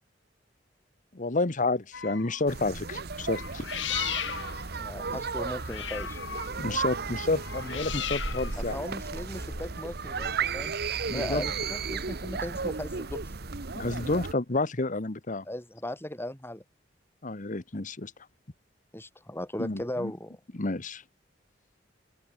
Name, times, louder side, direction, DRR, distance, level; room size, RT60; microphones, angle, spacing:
voice 1, 1.1-3.6 6.6-8.8 11.1-11.5 13.7-15.4 17.2-18.1 19.6-20.1 20.5-21.0, left 2 dB, 45° left, 1.3 m, -30 dB
sound 1, 1.9-2.5 3.2-10.3, left 9 dB, 75° left, 2.1 m, -37 dB
sound 2, 2.5-14.3, right 4 dB, 60° right, 1.2 m, -34 dB
voice 2, 4.8-6.2 8.6-10.7 11.1-13.2 15.5-16.6 18.9-20.4, left 1 dB, 15° left, 5.6 m, -37 dB
head